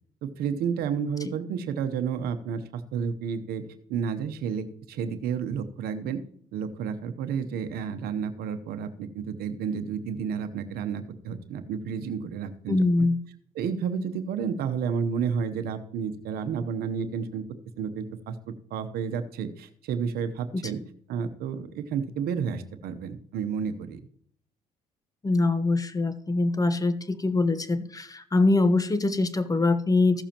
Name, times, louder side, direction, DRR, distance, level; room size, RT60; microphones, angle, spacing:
voice 1, 0.2-3.6 3.9-6.2 6.5-13.1 13.5-17.4 17.8-20.8 21.1-24.0, right 6 dB, 75° right, 9 dB, 0.9 m, -31 dB
voice 2, 12.7-13.2 20.5-20.6 25.2-30.2, left 2 dB, 20° left, 12 dB, 1.0 m, -23 dB
15.5 x 7.0 x 2.9 m, 0.64 s
supercardioid pair, 70°, 16 cm